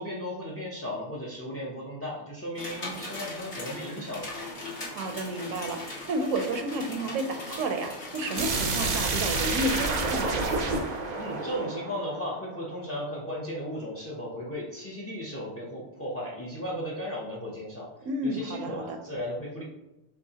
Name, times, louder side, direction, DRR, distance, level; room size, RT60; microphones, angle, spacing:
voice 1, 0.0-4.3 11.2-17.9 18.2-19.6, equal, 20° left, -4 dB, 0.4 m, -35 dB
sound 1, 2.6-9.8, left 2 dB, 60° left, 1.8 m, -39 dB
voice 2, 4.9-10.4 18.0-19.0, right 1 dB, 75° right, 5 dB, 1.0 m, -31 dB
sound 2, 8.4-13.1, right 3 dB, 50° right, 0.5 m, -29 dB
5.4 x 3.2 x 2.8 m, 0.94 s
omnidirectional pair, 1.4 m